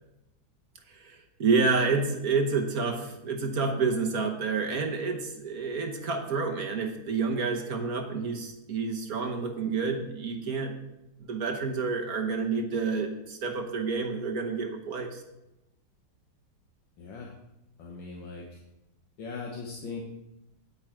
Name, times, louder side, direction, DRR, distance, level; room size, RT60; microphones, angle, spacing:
voice 1, 0.9-10.8 11.2-15.2, right 4 dB, 55° right, 3 dB, 1.4 m, -29 dB
voice 2, 17.0-17.3 17.8-18.6 19.2-20.1, left 4 dB, 70° left, -1 dB, 2.0 m, -39 dB
9.3 x 8.6 x 4.6 m, 0.92 s
omnidirectional pair, 2.2 m